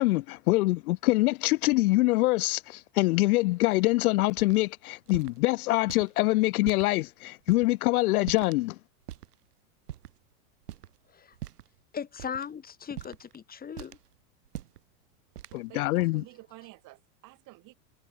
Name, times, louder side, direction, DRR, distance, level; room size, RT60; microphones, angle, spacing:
voice 1, 0.0-8.8 15.5-16.2, left 20 dB, 70° left, 0.6 m, -25 dB
sound 1, 4.4-4.6 5.1-5.4 5.9-6.1 6.6-6.9 7.5-7.7 8.2-8.6 9.1-9.3 9.9-10.2 10.6-11.0 11.3-11.7 12.2-12.4 13.0-13.4 13.8-14.1 14.4-14.8 15.4-15.6, right 12 dB, 85° right, 5.8 m, -42 dB
voice 2, 11.9-14.0, left 7 dB, 20° left, 2.6 m, -38 dB
voice 3, 15.5-17.7, right 21 dB, 45° right, 2.8 m, -50 dB
supercardioid pair, 130°, 45 cm